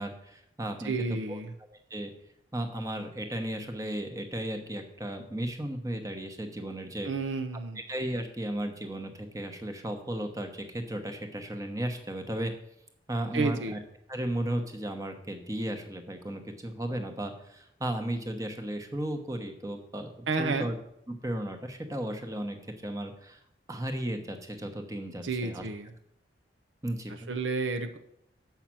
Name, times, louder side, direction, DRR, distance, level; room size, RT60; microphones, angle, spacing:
voice 1, 0.0-1.4 1.9-2.1 2.5-7.1 7.9-12.5 13.1-13.8 14.1-20.8 21.1-22.6 22.8-23.4 23.7-25.7 26.8-27.3, right 1 dB, 20° right, 5 dB, 1.0 m, -35 dB
voice 2, 0.8-1.5 7.0-7.8 13.3-13.8 20.3-20.7 25.2-25.9 27.3-28.0, right 3 dB, 85° right, 7 dB, 0.8 m, -31 dB
7.2 x 5.8 x 7.5 m, 0.76 s
head